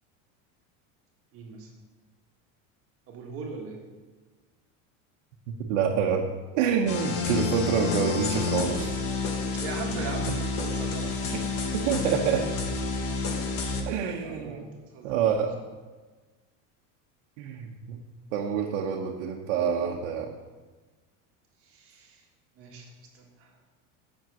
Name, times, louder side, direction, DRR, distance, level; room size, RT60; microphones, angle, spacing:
voice 1, 1.3-1.7 3.1-3.8 9.5-11.1 14.2-14.7 14.9-15.2 21.6-22.2 22.5-23.6, right 4 dB, 40° right, 1 dB, 1.7 m, -40 dB
voice 2, 5.5-6.3 6.5-8.9 11.7-12.5 13.9-14.7 15.0-15.6 17.4-18.0 18.3-20.3, right 7 dB, 75° right, 0 dB, 1.0 m, -27 dB
sound 1, 6.9-13.8, left 4 dB, 40° left, 1.2 m, -29 dB
7.8 x 6.6 x 6.3 m, 1.3 s
cardioid pair, 170°, 36 cm